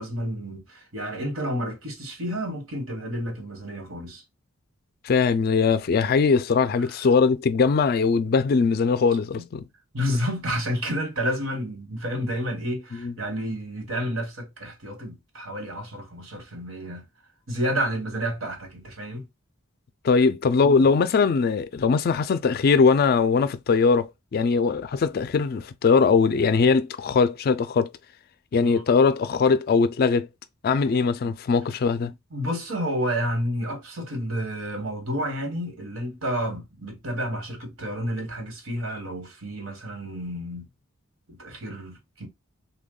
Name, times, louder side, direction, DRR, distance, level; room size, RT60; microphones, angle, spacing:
voice 1, 0.0-4.2 9.4-9.5 9.9-17.1 17.5-19.2 28.6-28.8 31.2-31.3 32.0-40.7 41.3-42.3, equal, 75° right, 1.1 m, -30 dB
voice 2, 5.0-9.6 13.0-13.1 20.0-27.9 28.5-30.3 30.6-32.1, left 5 dB, 45° left, 0.3 m, -21 dB
3.4 x 2.2 x 3.7 m
head